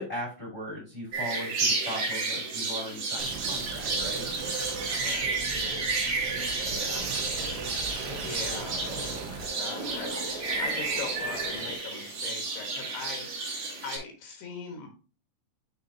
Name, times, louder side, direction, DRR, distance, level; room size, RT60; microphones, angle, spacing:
voice 1, 0.0-4.3 6.6-6.9 8.0-8.3, equal, 25° left, -4 dB, 1.6 m, -38 dB
sound 1, 1.1-14.0, right 3 dB, 50° right, 2.6 m, -31 dB
sound 2, 3.2-9.5, right 7 dB, 90° right, 3.3 m, -40 dB
voice 2, 4.7-5.3 5.6-5.9 6.3-13.5 13.8-14.9, left 5 dB, 70° left, 3 dB, 3.5 m, -42 dB
sound 3, 6.6-11.8, left 3 dB, 90° left, 3.6 m, -43 dB
10.5 x 3.8 x 2.7 m, 0.36 s
omnidirectional pair, 5.4 m